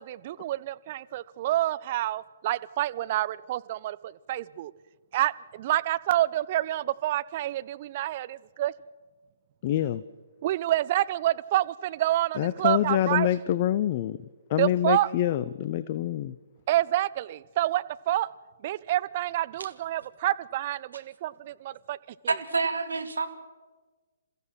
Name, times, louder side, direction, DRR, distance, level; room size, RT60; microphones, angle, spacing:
voice 1, 0.0-4.7 5.1-8.7 10.4-13.3 14.6-15.1 16.7-18.3 18.6-22.0 22.2-22.3, right 14 dB, 35° right, 0.7 m, -28 dB
voice 2, 9.6-10.0 12.4-14.2 14.5-16.4, left 12 dB, 35° left, 0.6 m, -26 dB
voice 3, 22.3-23.3, right 4 dB, 70° right, 2.4 m, -27 dB
28.5 x 15.0 x 6.2 m
figure-of-eight pair, 130°, 0 cm